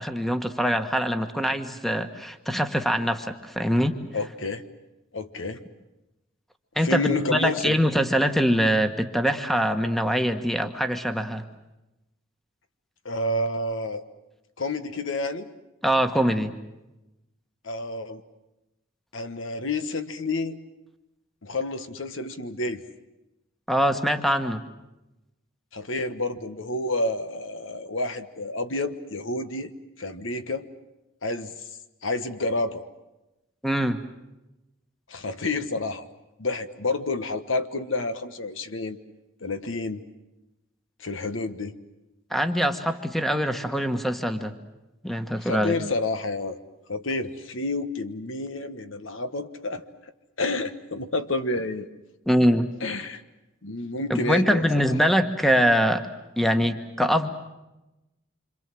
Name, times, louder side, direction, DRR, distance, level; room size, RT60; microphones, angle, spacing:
voice 1, 0.0-4.0 6.7-11.4 15.8-16.5 23.7-24.6 33.6-34.0 42.3-44.5 45.0-45.8 52.3-52.7 54.1-56.1 56.4-57.3, equal, ahead, 8 dB, 1.4 m, -23 dB
voice 2, 4.1-4.6 5.1-5.6 6.8-7.8 13.0-14.0 14.6-15.5 17.6-18.2 19.1-20.6 21.4-22.8 25.7-29.7 30.0-30.6 31.2-31.5 32.0-32.8 35.1-36.0 36.4-39.0 39.4-40.0 41.0-41.7 45.4-46.6 46.9-49.8 50.4-51.9 52.8-53.2 53.6-54.9, left 2 dB, 70° left, 10 dB, 1.4 m, -29 dB
27.0 x 26.0 x 7.7 m, 0.97 s
head